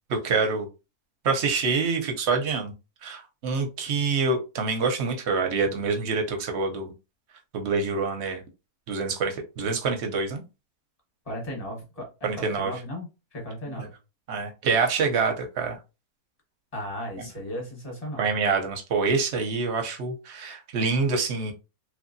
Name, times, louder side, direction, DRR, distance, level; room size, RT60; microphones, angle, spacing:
voice 1, 0.1-0.7 1.2-2.7 3.0-6.9 7.5-8.4 8.9-10.4 12.2-12.7 14.3-15.8 17.2-17.3 18.2-21.5, right 4 dB, 60° right, 0.7 m, -26 dB
voice 2, 11.3-13.1 13.3-13.9 16.7-18.2, equal, 25° left, 1.0 m, -35 dB
3.0 x 2.6 x 2.5 m
omnidirectional pair, 1.6 m